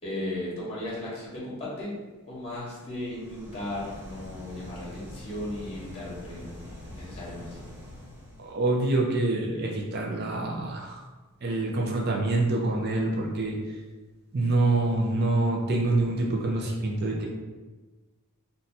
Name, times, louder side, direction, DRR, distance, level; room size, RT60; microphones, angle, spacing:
voice 1, 0.0-1.9 2.3-7.6, left 1 dB, 25° left, -6 dB, 1.0 m, -36 dB
sound 1, 2.9-8.6, left 1 dB, 20° right, 1.3 m, -44 dB
voice 2, 8.4-11.0 11.4-13.6 14.3-17.3, right 2 dB, 45° right, -2 dB, 0.4 m, -26 dB
2.6 x 2.3 x 4.0 m, 1.3 s
head